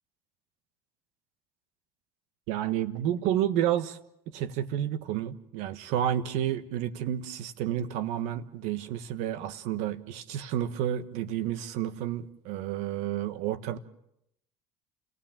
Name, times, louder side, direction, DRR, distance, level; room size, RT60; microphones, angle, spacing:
voice 1, 2.5-4.0 4.3-13.8, right 11 dB, 75° right, 1.4 m, -30 dB
29.0 x 16.5 x 7.5 m
supercardioid pair, 90°, 12 cm